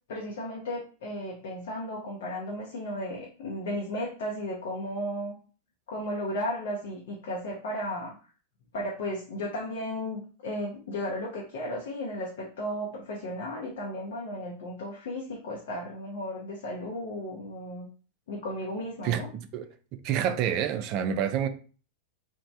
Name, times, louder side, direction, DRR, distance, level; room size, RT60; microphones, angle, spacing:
voice 1, 0.1-5.3 5.9-8.1 8.7-17.9 18.3-19.3, left 1 dB, 55° left, 0.6 m, -34 dB
voice 2, 19.0-19.7 20.0-21.5, right 9 dB, 40° right, 0.3 m, -28 dB
3.0 x 2.1 x 2.6 m
figure-of-eight pair, 90°, 0 cm